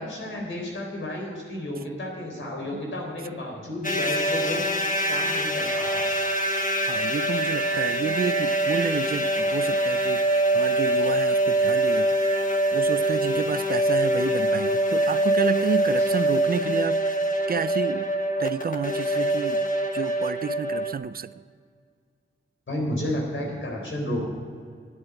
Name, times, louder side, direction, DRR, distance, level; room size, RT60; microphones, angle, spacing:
voice 1, 0.0-4.6 5.1-6.1 22.7-24.2, left 1 dB, 65° left, -1 dB, 4.0 m, -32 dB
sound 1, 3.8-20.9, right 1 dB, 40° left, 1.2 m, -24 dB
voice 2, 6.9-12.2 12.7-18.1 18.4-21.4, right 6 dB, 45° right, 16 dB, 0.4 m, -30 dB
11.0 x 9.0 x 8.3 m, 2.1 s
wide cardioid pair, 110°, 21 cm